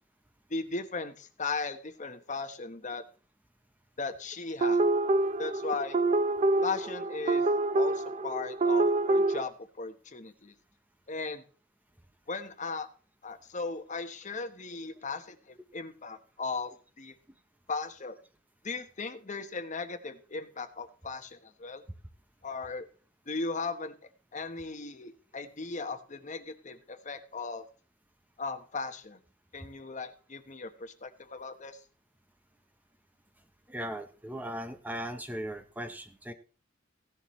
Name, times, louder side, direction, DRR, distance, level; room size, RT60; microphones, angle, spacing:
voice 1, 0.5-3.0 4.0-4.9 5.4-6.0 6.6-7.4 7.7-10.5 11.1-11.4 12.3-12.9 13.2-16.7 17.0-17.1 17.7-18.2 18.6-21.8 22.4-22.9 23.3-23.9 24.3-27.6 28.4-29.2 29.5-31.8, left 4 dB, 40° left, 9 dB, 1.1 m, -37 dB
sound 1, 4.6-9.4, right 2 dB, 35° right, 0.6 m, -26 dB
voice 2, 33.7-36.3, equal, 10° right, 7 dB, 0.8 m, -38 dB
16.0 x 11.0 x 3.1 m, 0.39 s
head